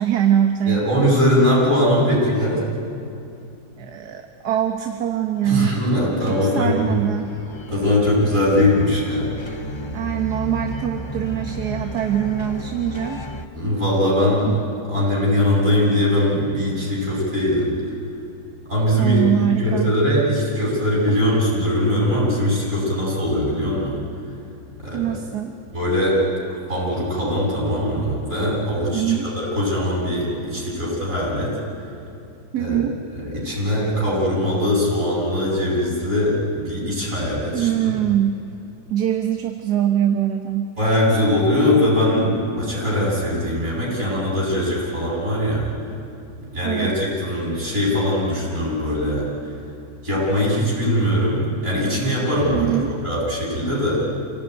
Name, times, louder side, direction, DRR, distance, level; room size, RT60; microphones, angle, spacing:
voice 1, 0.0-0.8 3.8-5.8 6.2-7.3 9.9-13.2 14.5-14.6 19.0-19.9 24.9-25.6 28.9-29.3 32.5-33.0 37.5-38.4 38.9-40.7 46.6-47.0 52.5-53.0, right 10 dB, 65° right, 5 dB, 1.6 m, -23 dB
voice 2, 0.6-2.6 5.4-6.9 7.7-9.3 13.5-14.6 14.9-17.7 18.7-19.3 19.6-24.0 24.8-25.2 25.7-26.2 26.7-31.6 32.6-32.8 33.1-38.0 40.8-45.7 46.5-49.3 50.0-52.8 53.0-54.0, left 1 dB, 45° right, -6 dB, 8.6 m, -21 dB
sound 1, 6.2-13.5, equal, 30° left, 0.5 m, -33 dB
27.0 x 18.0 x 9.6 m, 2.6 s
omnidirectional pair, 2.0 m